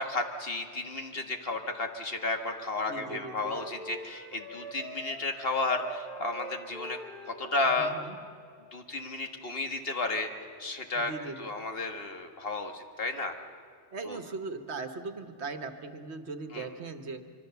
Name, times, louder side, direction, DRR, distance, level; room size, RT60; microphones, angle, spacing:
voice 1, 0.0-7.0 7.3-7.9 8.7-10.3 10.6-11.1 11.4-13.4 14.1-14.2 16.5-16.7, left 2 dB, 60° left, 5 dB, 1.8 m, -32 dB
Wind instrument woodwind instrument, 2.8-8.1, right 1 dB, ahead, 4.4 m, -45 dB
voice 2, 2.9-3.5 7.8-8.2 10.9-11.5 13.9-17.2, right 3 dB, 75° right, 8 dB, 1.6 m, -39 dB
25.5 x 23.5 x 7.0 m, 2.2 s
omnidirectional pair, 1.1 m